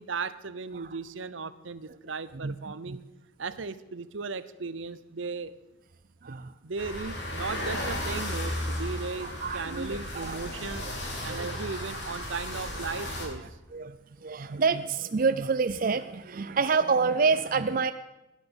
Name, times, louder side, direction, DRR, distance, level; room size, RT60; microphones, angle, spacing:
voice 1, 0.0-3.0 3.4-5.6 6.3-10.8 11.2-13.4, right 4 dB, 75° right, 14 dB, 0.8 m, -36 dB
voice 2, 6.2-6.5 9.2-10.4 10.8-10.9 11.3-11.6 13.7-17.9, right 4 dB, 45° right, 10 dB, 0.5 m, -28 dB
sound 1, 6.8-13.3, left 1 dB, 60° left, 3.5 m, -34 dB
16.5 x 10.0 x 7.0 m, 0.97 s
head